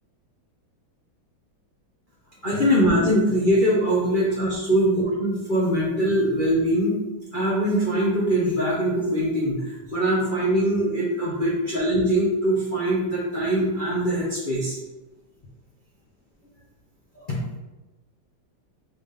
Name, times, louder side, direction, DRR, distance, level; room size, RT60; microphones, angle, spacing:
voice 1, 2.4-7.0 7.3-14.8 17.3-17.4, equal, 60° left, -8 dB, 0.5 m, -22 dB
4.1 x 3.5 x 3.6 m, 1.1 s
omnidirectional pair, 2.2 m